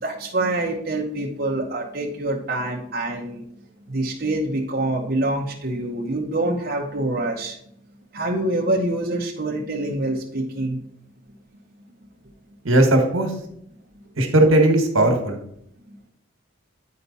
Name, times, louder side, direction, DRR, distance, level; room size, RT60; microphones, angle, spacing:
voice 1, 0.0-3.4 3.9-7.6 8.1-10.8, right 2 dB, 45° right, -1 dB, 0.9 m, -25 dB
voice 2, 12.6-13.3 14.2-15.4, right 1 dB, 80° right, 4 dB, 1.5 m, -17 dB
9.5 x 4.6 x 4.1 m, 0.71 s
head